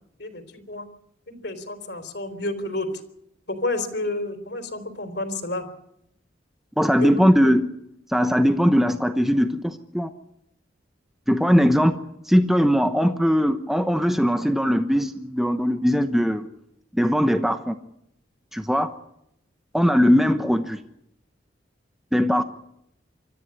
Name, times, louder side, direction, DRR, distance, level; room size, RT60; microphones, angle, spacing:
voice 1, 0.2-0.9 1.3-2.9 3.5-5.6 7.0-7.3, left 2 dB, 60° left, 8 dB, 3.6 m, -30 dB
voice 2, 6.8-7.7 8.1-10.1 11.3-12.0 12.3-16.5 16.9-17.7 18.5-18.9 19.7-20.8 22.1-22.4, equal, ahead, 7 dB, 1.0 m, -20 dB
25.5 x 14.0 x 9.8 m, 0.77 s
head